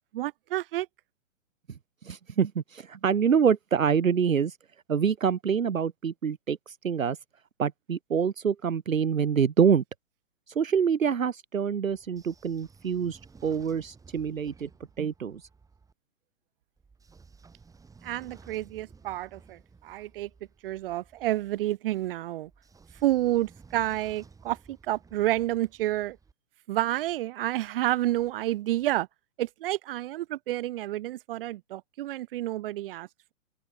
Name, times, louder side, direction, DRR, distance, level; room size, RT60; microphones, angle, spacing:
voice 1, 0.1-0.9 18.0-20.3 20.6-22.5 23.0-26.2 26.7-29.1 29.4-33.3, right 15 dB, 40° right, 3.0 m, -29 dB
voice 2, 2.0-4.6 4.9-7.2 7.6-9.8 10.5-14.7 15.0-15.5, right 7 dB, 75° right, 1.1 m, -26 dB
Train / Sliding door, 11.9-15.9 16.8-21.6 22.4-26.3, right 4 dB, 10° right, 5.3 m, -55 dB
figure-of-eight pair, 120°, 41 cm